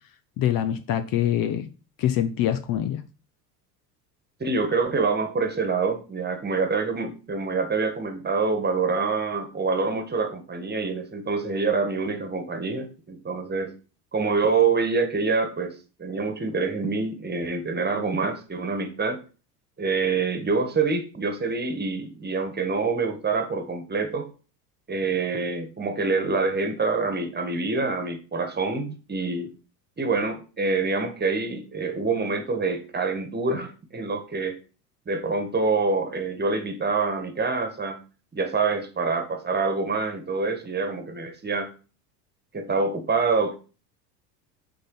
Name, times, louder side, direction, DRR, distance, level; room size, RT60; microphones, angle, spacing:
voice 1, 0.4-1.7 2.0-3.0, left 11 dB, 45° left, 0.8 m, -24 dB
voice 2, 4.4-13.8 14.1-19.2 19.8-24.3 24.9-29.5 30.0-34.6 35.1-38.0 38.3-41.7 42.5-43.5, right 4 dB, 20° right, 1.6 m, -26 dB
6.8 x 4.0 x 5.4 m
hypercardioid pair, 75°, 47 cm